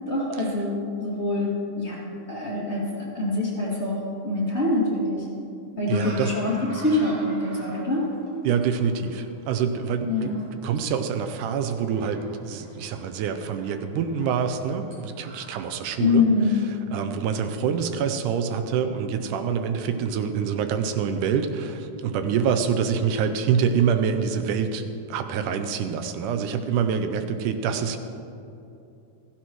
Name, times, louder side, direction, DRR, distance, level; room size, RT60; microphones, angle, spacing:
voice 1, 0.1-2.0 2.3-4.0 4.2-5.3 5.8-8.0 10.1-10.4 16.0-16.6, left 2 dB, 25° left, -6 dB, 2.2 m, -25 dB
sound 1, 5.9-15.7, right 2 dB, 65° right, 3.6 m, -46 dB
voice 2, 5.9-6.3 8.4-10.3 10.6-16.3 16.9-28.0, right 7 dB, 85° right, 8 dB, 2.2 m, -26 dB
16.0 x 14.5 x 3.1 m, 2.8 s
omnidirectional pair, 3.6 m